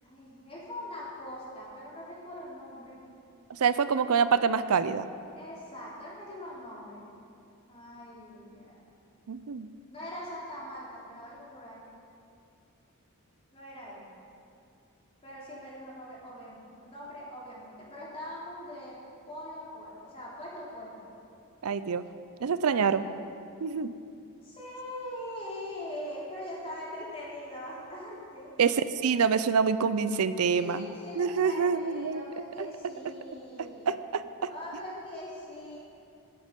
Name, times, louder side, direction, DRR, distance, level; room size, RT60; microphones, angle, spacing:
voice 1, 0.0-3.0 3.9-4.0 5.4-7.1 7.7-8.9 9.9-11.8 13.5-14.0 15.2-19.0 19.3-21.2 22.7-22.9 24.4-28.5 30.5-33.9 34.5-35.8, left 1 dB, 25° left, -6 dB, 3.4 m, -42 dB
voice 2, 3.5-5.1 9.3-9.7 21.6-22.0 22.4-23.0 23.6-23.9 28.6-30.9 31.1-32.7 33.9-34.5, right 6 dB, 70° right, 13 dB, 0.5 m, -26 dB
13.0 x 9.6 x 5.3 m, 2.5 s
head